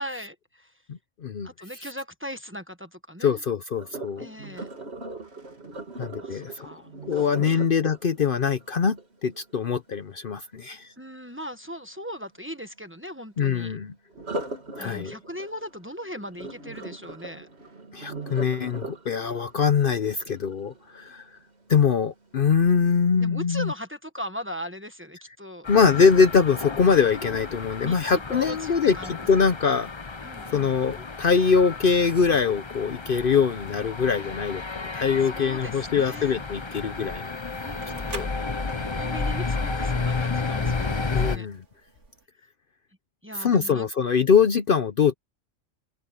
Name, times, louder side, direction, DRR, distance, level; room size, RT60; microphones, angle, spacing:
voice 1, 0.0-0.7 1.4-3.4 4.2-4.7 6.2-7.6 11.0-13.8 14.8-17.5 23.2-25.7 27.8-29.2 30.2-30.8 35.2-36.4 37.6-38.4 38.9-41.5 43.2-44.1, equal, 10° right, 1.2 m, -39 dB
voice 2, 0.9-1.5 3.2-4.2 6.0-6.7 7.1-10.9 13.4-13.9 14.8-15.1 17.9-21.2 21.7-23.7 25.7-29.0 29.3-29.9 30.5-37.3 38.1-38.3 41.1-41.6 43.4-45.1, left 6 dB, 55° left, 0.9 m, -23 dB
Sink (filling or washing), 3.8-9.7 14.1-21.2 21.7-22.0 22.5-22.6, right 2 dB, 60° right, 3.2 m, -39 dB
sound 1, 25.6-41.4, left 4 dB, 25° left, 0.8 m, -32 dB
sound 2, 37.0-42.2, right 3 dB, 75° right, 2.7 m, -44 dB
open air
omnidirectional pair, 1.2 m